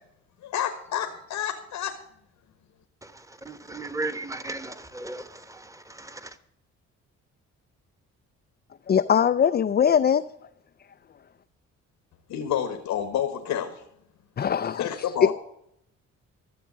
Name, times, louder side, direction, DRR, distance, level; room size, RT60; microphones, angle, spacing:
voice 1, 0.4-1.9 12.3-13.8 14.7-15.3, left 10 dB, 85° left, 1.5 m, -29 dB
voice 2, 3.0-6.4, right 2 dB, 10° right, 1.2 m, -36 dB
voice 3, 8.9-10.2 14.4-14.8, left 8 dB, 35° left, 0.5 m, -21 dB
13.5 x 7.2 x 7.3 m
cardioid pair, 90°, 30 cm